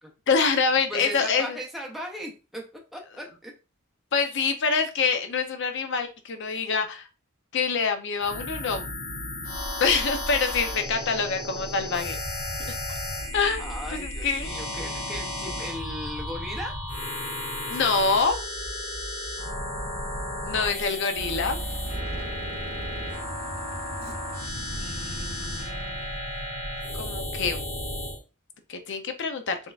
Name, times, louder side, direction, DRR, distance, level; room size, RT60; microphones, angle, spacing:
voice 1, 0.3-1.6 4.1-7.1 7.5-8.8 9.8-12.2 12.7-12.8 13.3-14.5 17.7-18.4 20.4-21.6 26.9-27.6 28.7-29.6, left 5 dB, 55° left, 6 dB, 0.6 m, -25 dB
voice 2, 0.9-2.6 2.9-3.5 13.6-16.8 24.7-26.2, equal, ahead, -1 dB, 0.6 m, -38 dB
sound 1, 8.2-28.2, left 1 dB, 75° left, 1.6 m, -33 dB
Truck / Idling, 21.2-27.2, right 2 dB, 45° right, 0.6 m, -40 dB
4.3 x 3.4 x 2.4 m, 0.31 s
head